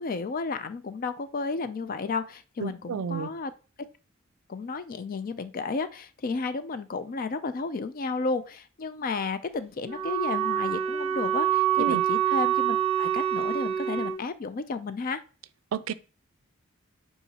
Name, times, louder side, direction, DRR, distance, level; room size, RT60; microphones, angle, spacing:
voice 1, 0.0-3.5 4.5-15.2, left 4 dB, 45° left, 0.4 m, -32 dB
voice 2, 2.6-3.3 11.8-12.0 15.7-15.9, right 6 dB, 75° right, 0.4 m, -30 dB
Wind instrument woodwind instrument, 9.8-14.2, right 10 dB, 30° right, 0.7 m, -26 dB
8.1 x 4.8 x 2.8 m
head